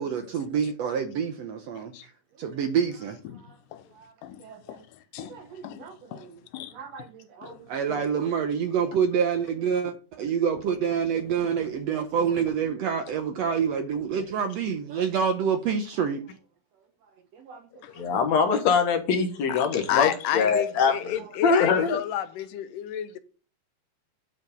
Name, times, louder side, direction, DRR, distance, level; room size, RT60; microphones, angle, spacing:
voice 1, 0.0-2.1 2.4-3.5 3.9-4.1 4.4-4.8 5.2-6.4 6.7-16.2 17.5-17.6 17.9-18.2, right 7 dB, 70° right, 1.6 m, -28 dB
voice 2, 4.2-4.9 5.1-5.4 5.6-5.8 6.1-6.3 6.5-6.7 7.4-7.6 7.9-8.0 17.8-17.9 19.5-23.2, left 11 dB, 80° left, 2.2 m, -32 dB
voice 3, 17.9-22.0, left 5 dB, 60° left, 2.4 m, -23 dB
11.0 x 5.2 x 5.3 m
omnidirectional pair, 3.8 m